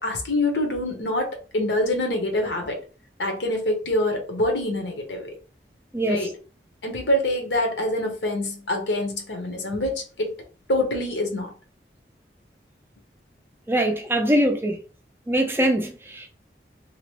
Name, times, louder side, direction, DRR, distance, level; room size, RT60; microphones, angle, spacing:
voice 1, 0.0-2.8 3.2-5.4 6.1-6.3 6.8-10.3 10.7-11.5, left 1 dB, 85° left, 0.9 m, -25 dB
voice 2, 13.7-14.8 15.3-16.3, right 1 dB, 15° right, 0.3 m, -22 dB
2.8 x 2.1 x 3.0 m
head